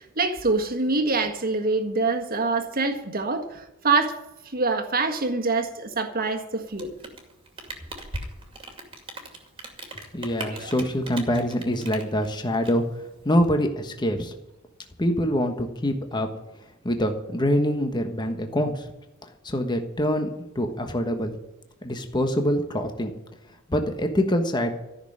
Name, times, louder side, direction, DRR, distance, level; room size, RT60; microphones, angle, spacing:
voice 1, 0.0-6.9 10.5-10.7, right 3 dB, 45° right, 1.6 m, -25 dB
Rain, 6.6-13.4, right 1 dB, 25° right, 2.4 m, -39 dB
voice 2, 10.1-12.8 13.2-14.3 15.0-16.3 16.8-18.9 19.4-20.3 20.5-21.3 21.8-23.1 23.7-24.7, equal, 20° left, 1.2 m, -25 dB
14.0 x 6.5 x 10.0 m
head